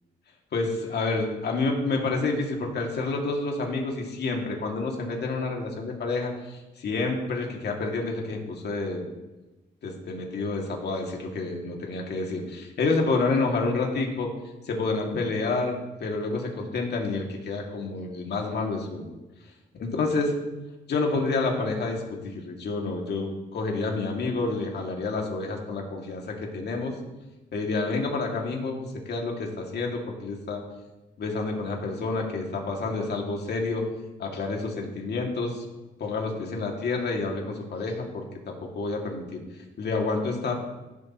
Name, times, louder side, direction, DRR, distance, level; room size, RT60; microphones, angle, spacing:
voice 1, 0.5-9.1 9.8-14.3 14.7-19.1 19.8-20.3 20.9-27.0 27.5-30.6 31.2-33.9 34.2-35.7 36.0-39.4 39.8-40.5, left 3 dB, 55° left, 0 dB, 2.3 m, -29 dB
16.0 x 7.3 x 3.0 m, 1.1 s
cardioid pair, 90°, 20 cm